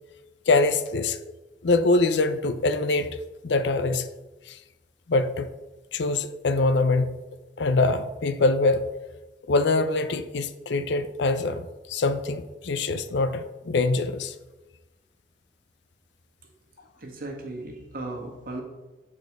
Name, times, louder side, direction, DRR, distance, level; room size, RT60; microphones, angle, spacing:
voice 1, 0.5-1.2 1.6-4.1 4.5-4.6 5.1-5.5 5.9-7.2 7.6-8.9 9.5-14.3, left 3 dB, 70° left, 11 dB, 0.5 m, -24 dB
voice 2, 17.0-18.6, right 2 dB, 55° right, 0 dB, 1.6 m, -36 dB
7.9 x 4.6 x 4.7 m, 1.1 s
head